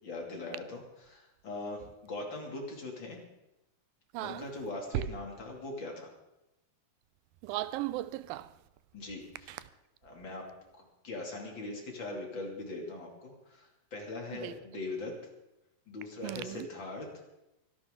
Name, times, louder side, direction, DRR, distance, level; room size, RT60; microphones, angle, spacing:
voice 1, 0.0-3.2 4.2-6.1 8.9-9.7 10.0-10.4 10.8-15.1 15.9-17.1, left 2 dB, 35° left, 2.9 m, -41 dB
voice 2, 4.1-4.5 4.9-5.0 7.4-8.5 9.5-9.6 14.4-14.5 16.2-16.7, right 16 dB, 80° right, 2.3 m, -35 dB
24.0 x 12.0 x 3.8 m
omnidirectional pair, 4.2 m